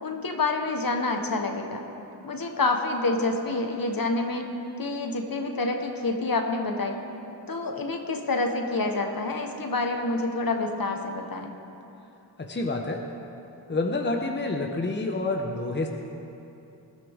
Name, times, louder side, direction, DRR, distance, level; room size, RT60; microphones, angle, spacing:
voice 1, 0.0-1.8 2.2-4.5 4.8-7.0 7.5-11.5, left 3 dB, 50° left, 3 dB, 1.4 m, -27 dB
voice 2, 12.4-13.0 13.7-15.9, left 2 dB, 25° left, 2 dB, 1.1 m, -28 dB
20.5 x 13.0 x 3.7 m, 2.9 s
cardioid pair, 75°, 44 cm